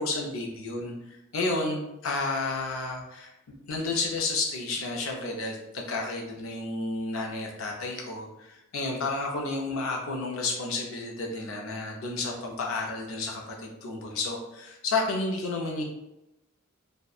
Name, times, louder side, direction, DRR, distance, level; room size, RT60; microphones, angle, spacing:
voice 1, 0.0-15.8, left 3 dB, 75° left, 0 dB, 0.5 m, -31 dB
2.7 x 2.1 x 2.3 m, 0.88 s
head